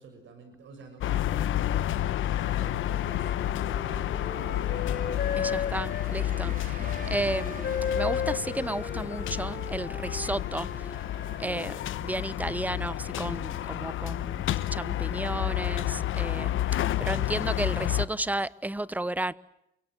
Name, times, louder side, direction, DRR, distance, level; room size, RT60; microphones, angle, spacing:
voice 1, 0.0-1.7 2.2-3.3 3.7-5.0, right 4 dB, 70° right, 6.6 m, -50 dB
sound 1, 1.0-18.1, left 13 dB, 80° left, 1.3 m, -30 dB
Wind instrument woodwind instrument, 1.1-6.1 6.8-11.8, left 6 dB, 55° left, 6.5 m, -36 dB
sound 2, 3.8-13.6 14.0-14.1 16.8-16.9, right 5 dB, 45° right, 3.8 m, -49 dB
voice 2, 5.4-7.7 7.9-10.9 11.4-14.4 14.7-19.3, right 1 dB, 10° right, 1.0 m, -33 dB
29.0 x 24.0 x 7.9 m
cardioid pair, 90°, 20 cm